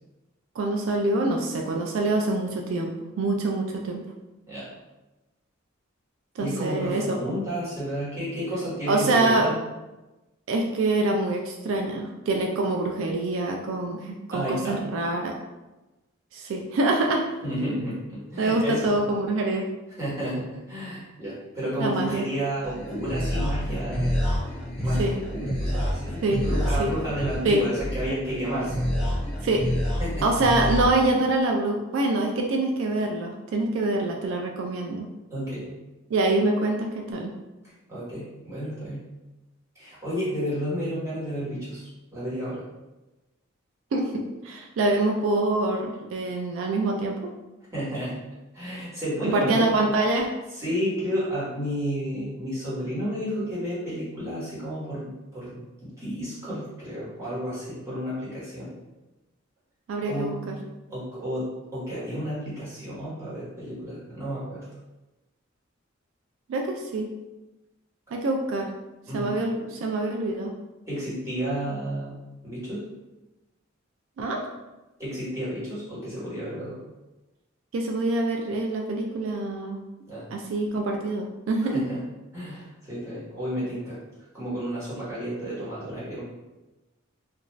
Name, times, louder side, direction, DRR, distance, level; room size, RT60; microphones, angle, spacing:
voice 1, 0.6-4.0 6.4-7.2 8.9-9.5 10.5-15.3 16.3-17.3 18.4-19.7 21.8-22.2 25.0-25.1 26.2-26.4 26.8-26.9 27.4-27.6 29.4-29.6 30.2-35.1 36.1-37.3 43.9-47.2 49.2-50.3 59.9-60.6 66.5-67.1 68.1-68.7 69.1-70.5 74.2-74.4 77.7-79.8 80.3-81.8, right 2 dB, 70° right, 1 dB, 0.3 m, -25 dB
voice 2, 6.4-9.5 14.3-14.8 17.4-19.0 19.9-24.1 24.8-28.8 30.0-30.3 35.3-35.6 37.9-39.0 39.7-42.6 47.7-48.2 48.5-49.6 50.5-58.7 60.0-60.4 60.9-64.6 69.1-69.3 70.8-72.8 75.0-76.8 80.1-80.3 81.7-82.0 82.3-84.0 84.3-86.2, equal, 15° right, -10 dB, 1.1 m, -31 dB
sound 1, 22.6-30.9, equal, 5° left, 0.5 m, -28 dB
2.4 x 2.3 x 3.0 m, 1.1 s
head